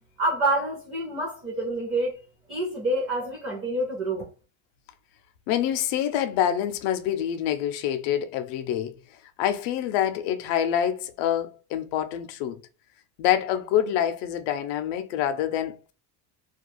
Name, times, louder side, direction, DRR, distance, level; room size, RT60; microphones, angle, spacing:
voice 1, 0.2-2.2 2.5-4.3, right 1 dB, 30° right, 0.6 m, -27 dB
voice 2, 5.5-9.0 9.4-12.6 13.2-15.8, left 10 dB, 65° left, 0.5 m, -26 dB
2.3 x 2.3 x 3.0 m
cardioid pair, 175°, 45 cm